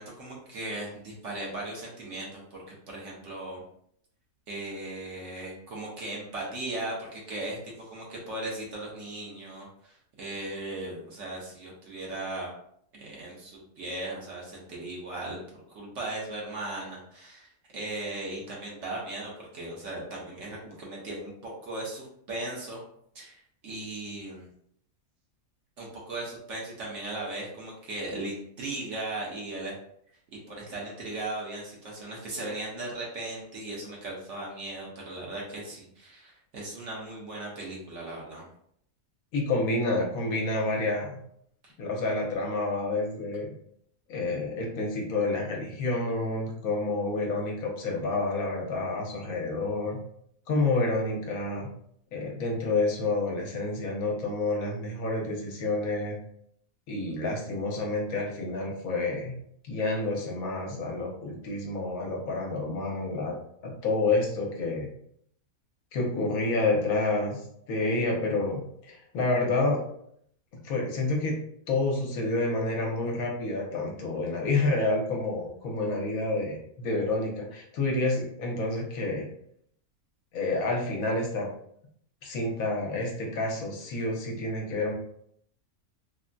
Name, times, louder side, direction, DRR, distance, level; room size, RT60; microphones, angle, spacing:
voice 1, 0.0-3.6 4.5-12.5 12.9-15.4 15.7-22.8 23.1-24.5 25.8-29.7 30.5-38.4 41.6-41.7, right 2 dB, 60° right, -4 dB, 1.1 m, -37 dB
voice 2, 39.3-41.2 41.8-43.5 44.1-50.0 50.5-51.7 52.1-56.2 56.9-59.3 59.7-63.3 63.6-64.9 65.9-69.8 70.6-71.3 71.7-79.3 80.3-81.5 82.2-84.9, left 2 dB, 75° left, 0 dB, 1.2 m, -29 dB
3.4 x 2.0 x 2.5 m, 0.68 s
omnidirectional pair, 1.5 m